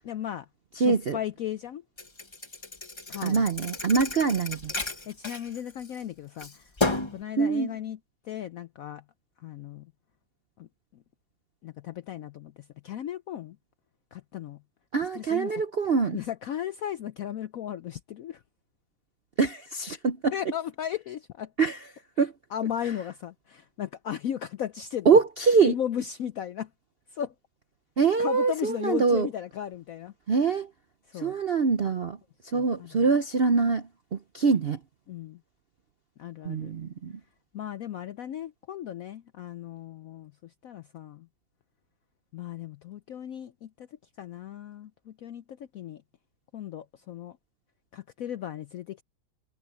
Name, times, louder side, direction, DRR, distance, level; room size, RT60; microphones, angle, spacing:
voice 1, 0.0-0.5 0.8-1.8 3.1-3.5 4.9-8.0 8.2-9.0 9.4-9.9 10.6-11.0 11.6-13.6 14.1-14.6 15.1-15.5 16.1-18.4 20.3-21.5 22.2-25.1 25.6-26.7 27.1-27.3 28.2-30.1 31.1-31.3 32.5-33.0 35.1-35.4 36.2-36.7 37.5-41.3 42.3-43.9 44.2-46.0 46.5-47.4 47.9-49.0, left 10 dB, 75° left, 0.8 m, -36 dB
voice 2, 0.8-1.2 3.2-4.7 7.4-7.7 14.9-16.2 19.4-20.3 21.6-21.8 22.2-22.3 25.1-25.7 28.0-29.3 30.3-30.7 31.1-32.2 32.4-34.8 36.4-37.2, right 5 dB, 60° right, 0.6 m, -24 dB
Thump thud, 2.0-6.0 6.4-7.2, left 3 dB, 20° left, 1.0 m, -32 dB
omnidirectional pair, 2.0 m